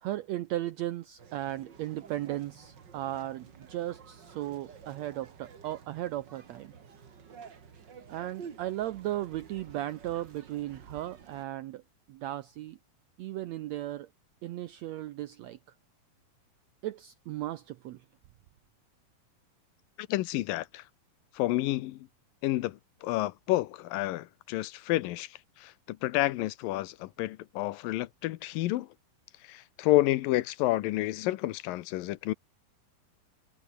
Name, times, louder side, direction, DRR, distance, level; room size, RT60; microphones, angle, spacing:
voice 1, 0.0-6.7 8.1-11.8 12.1-12.8 13.2-14.1 14.4-15.6 16.8-18.0, right 14 dB, 80° right, 1.5 m, -36 dB
sound 1, 1.2-11.5, right 6 dB, 40° right, 2.1 m, -51 dB
voice 2, 20.0-20.8 21.3-22.1 22.4-25.3 25.6-28.9 29.5-32.3, left 17 dB, 85° left, 2.6 m, -30 dB
omnidirectional pair, 3.9 m